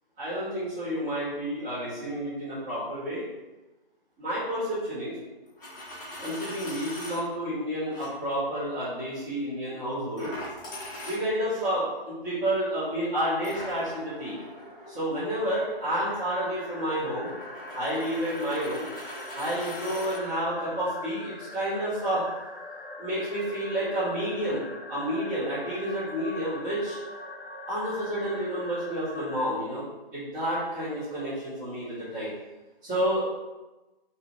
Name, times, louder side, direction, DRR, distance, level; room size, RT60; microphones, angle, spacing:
voice 1, 0.2-3.2 4.2-5.2 6.2-10.3 11.0-14.4 14.9-17.3 17.7-18.9 19.3-22.2 23.0-24.6 24.9-27.0 27.7-29.8 30.1-32.3 32.8-33.2, equal, 20° right, -16 dB, 1.4 m, -30 dB
Coin (dropping), 5.5-7.2 7.9-8.1 10.2-11.6 13.4-20.2, left 1 dB, 20° left, 0.7 m, -41 dB
sound 1, 16.0-29.5, left 2 dB, 70° left, 0.6 m, -43 dB
3.1 x 2.7 x 3.0 m, 1.1 s
figure-of-eight pair, 145°, 30 cm